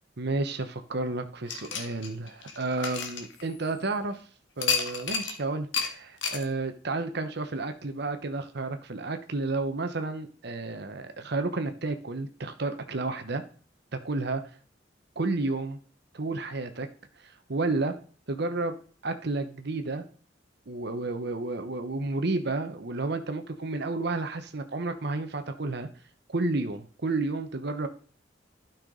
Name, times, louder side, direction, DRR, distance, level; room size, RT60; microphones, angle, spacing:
voice 1, 0.2-4.3 4.6-13.4 13.9-14.4 15.2-15.8 16.1-16.9 17.2-17.9 18.3-18.7 19.0-20.0 20.7-25.9 26.3-27.9, right 3 dB, 65° right, 8 dB, 1.0 m, -31 dB
sound 1, 1.5-3.9 4.6-5.4 5.7-5.9 6.2-6.4, left 6 dB, 85° left, 1.5 m, -31 dB
12.0 x 5.8 x 3.9 m, 0.43 s
head